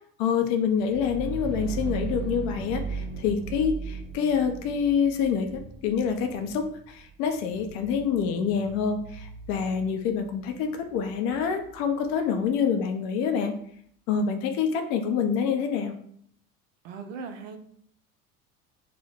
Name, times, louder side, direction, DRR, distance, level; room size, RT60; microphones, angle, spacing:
voice 1, 0.2-13.5 14.1-15.9, left 6 dB, 35° left, 5 dB, 0.4 m, -26 dB
sound 1, 0.7-12.3, right 5 dB, 25° right, 0.7 m, -38 dB
voice 2, 16.8-17.6, right 5 dB, 60° right, 6 dB, 0.6 m, -38 dB
2.7 x 2.0 x 4.0 m, 0.64 s
figure-of-eight pair, 70°, 45 cm